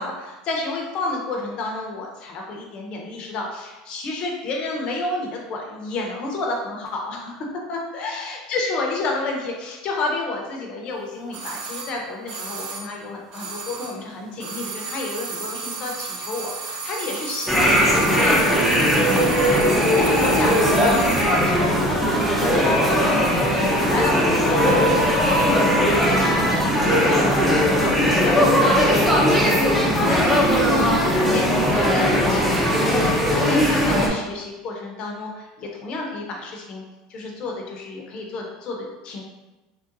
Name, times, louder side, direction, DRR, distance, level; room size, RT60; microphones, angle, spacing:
voice 1, 0.0-19.2 19.4-36.8 37.1-39.2, left 2 dB, 45° left, 0 dB, 0.6 m, -30 dB
sound 1, 11.3-14.1 14.3-21.4 21.6-21.7, right 4 dB, 45° right, 0.6 m, -33 dB
sound 2, 17.5-34.1, equal, ahead, 0.5 m, -19 dB
3.7 x 2.2 x 2.6 m, 1.1 s
supercardioid pair, 125°, 2 cm